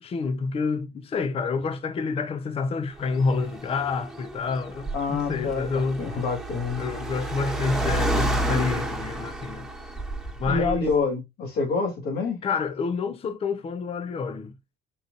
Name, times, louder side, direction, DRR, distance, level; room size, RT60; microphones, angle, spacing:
voice 1, 0.0-6.0 6.8-9.7 10.4-10.9 12.4-14.5, left 4 dB, 35° left, 0.6 m, -28 dB
Car, 3.0-10.9, right 1 dB, ahead, 1.3 m, -30 dB
voice 2, 4.9-6.8 10.5-12.4, left 4 dB, 65° left, 2.7 m, -27 dB
5.4 x 4.0 x 2.4 m
cardioid pair, 110°, 17 cm